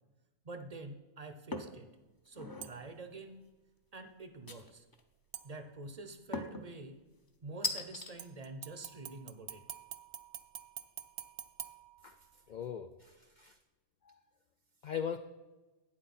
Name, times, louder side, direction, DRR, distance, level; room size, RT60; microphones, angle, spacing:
voice 1, 0.4-1.9 2.2-3.4 3.9-4.8 5.4-7.0 7.4-9.7, right 2 dB, 40° right, 8 dB, 0.7 m, -47 dB
sound 1, 1.5-1.8 2.3-2.7 4.5-5.0 6.3-6.7 7.6-8.1, left 3 dB, 25° left, 0.5 m, -38 dB
sound 2, 2.6-3.0 5.3-6.0 8.2-12.6 13.0-13.1, right 10 dB, 70° right, 0.9 m, -48 dB
voice 2, 12.5-13.6 14.0-14.2 14.8-15.2, left 8 dB, 80° left, 9 dB, 0.4 m, -40 dB
12.0 x 8.8 x 4.2 m, 1.1 s
omnidirectional pair, 1.3 m